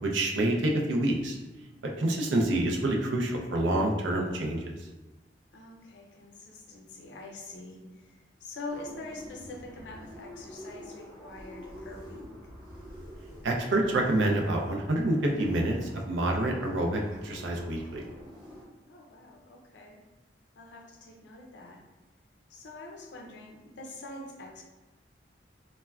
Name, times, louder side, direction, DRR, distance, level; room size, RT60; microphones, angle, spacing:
voice 1, 0.0-1.4 2.0-4.7 13.4-18.1, right 1 dB, 90° right, 1 dB, 0.4 m, -27 dB
voice 2, 1.5-2.0 5.5-12.3 18.9-20.0 20.6-21.8 22.5-24.6, left 2 dB, 70° left, 1 dB, 0.5 m, -45 dB
sound 1, 8.7-18.6, equal, 5° right, 1.0 m, -47 dB
3.3 x 2.1 x 2.3 m, 1.1 s
head